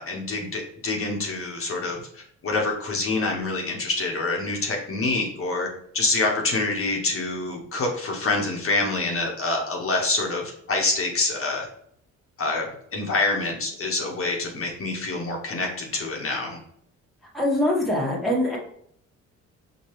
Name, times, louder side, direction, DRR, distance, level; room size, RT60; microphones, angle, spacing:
voice 1, 0.0-5.7 5.9-11.7 12.4-12.7 12.9-16.6, left 3 dB, 45° left, 0 dB, 0.9 m, -26 dB
voice 2, 17.3-18.6, left 1 dB, ahead, -3 dB, 1.1 m, -23 dB
4.7 x 2.2 x 3.0 m, 0.66 s
cardioid pair, 90°, 30 cm